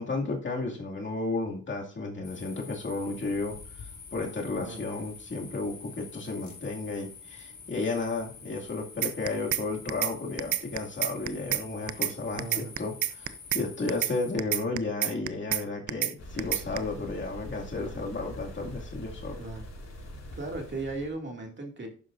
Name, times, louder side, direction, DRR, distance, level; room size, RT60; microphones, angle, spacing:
voice 1, 0.0-19.4, left 3 dB, 40° left, -1 dB, 2.4 m, -33 dB
sound 1, 2.2-14.3, left 5 dB, 75° left, 4.5 m, -47 dB
sound 2, 9.0-9.6 9.9-10.1 10.4-11.6 11.9-12.1 12.4-13.6 13.9-14.1 14.4-15.6 15.9-16.1 16.4-16.8, right 12 dB, 90° right, 0.6 m, -28 dB
voice 2, 12.3-12.7 19.4-19.6 20.4-21.9, right 2 dB, 40° right, 2 dB, 2.4 m, -36 dB
sound 3, 16.2-21.1, left 1 dB, 60° left, 5.5 m, -43 dB
11.5 x 9.6 x 2.6 m, 0.41 s
cardioid pair, 100°, 29 cm